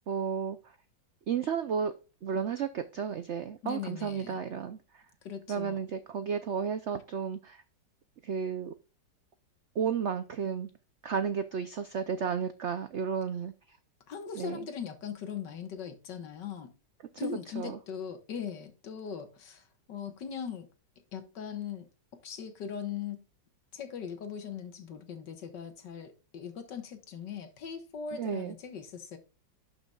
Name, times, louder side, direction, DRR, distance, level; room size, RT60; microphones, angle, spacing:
voice 1, 0.1-0.7 1.3-1.9 2.2-5.0 5.5-7.6 8.2-8.7 9.7-10.7 11.0-13.8 14.4-14.6 17.6-17.8 28.1-28.6, right 6 dB, 70° right, 0.6 m, -33 dB
voice 2, 3.6-4.4 5.2-5.8 14.1-16.7 17.2-20.7 21.1-21.9 22.2-23.2 23.7-29.2, left 7 dB, 75° left, 2.0 m, -40 dB
12.0 x 6.0 x 2.4 m
omnidirectional pair, 2.0 m